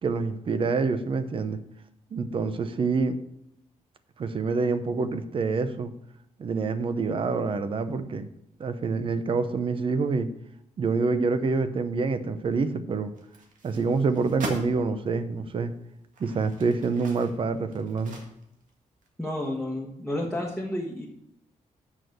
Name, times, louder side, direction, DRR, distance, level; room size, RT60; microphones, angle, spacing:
voice 1, 0.0-1.6 2.1-3.2 4.2-5.9 6.4-8.3 8.6-10.3 10.8-13.1 13.6-15.7 16.2-18.2, right 4 dB, 40° right, 10 dB, 0.7 m, -27 dB
sound 1, 13.2-14.7 15.4-15.5 16.0-18.7 19.0-19.1, right 2 dB, 80° right, 1.8 m, -40 dB
voice 2, 19.2-21.1, left 1 dB, ahead, -4 dB, 1.2 m, -31 dB
7.4 x 6.0 x 6.5 m, 0.78 s
wide cardioid pair, 140°, 13 cm